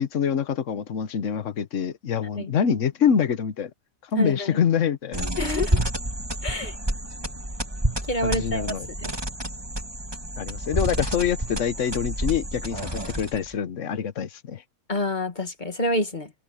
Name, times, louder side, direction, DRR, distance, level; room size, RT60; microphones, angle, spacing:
voice 1, 0.0-3.7 4.1-5.2 8.2-8.9 10.4-14.6, left 8 dB, 60° left, 1.4 m, -25 dB
voice 2, 4.1-4.6 5.4-5.8 6.4-6.7 8.1-9.1 14.9-16.3, left 1 dB, 35° left, 2.1 m, -28 dB
sound 1, 5.1-13.5, right 1 dB, 15° right, 2.7 m, -29 dB
omnidirectional pair, 1.5 m